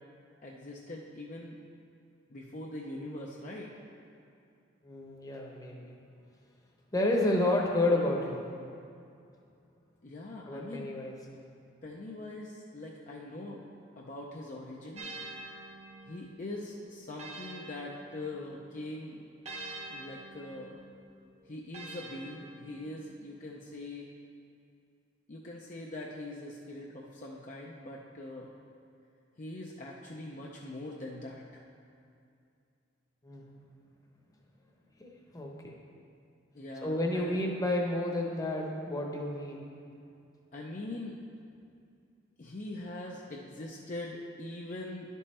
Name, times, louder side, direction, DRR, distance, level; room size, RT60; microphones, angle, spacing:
voice 1, 0.4-1.6 2.3-3.7 10.0-10.9 11.8-13.7 14.0-15.1 16.0-19.2 19.9-20.8 21.4-24.1 25.3-28.5 29.4-31.6 36.5-37.4 40.5-41.2 42.4-45.1, left 2 dB, 40° left, -2 dB, 0.6 m, -42 dB
voice 2, 4.8-5.9 6.9-8.4 10.4-11.1 33.2-33.4 35.0-35.7 36.8-39.6, left 1 dB, 20° left, -1 dB, 0.9 m, -30 dB
sound 1, 14.9-18.7 19.4-23.1, right 2 dB, 35° right, 1.0 m, -47 dB
11.0 x 5.4 x 4.2 m, 2.5 s
head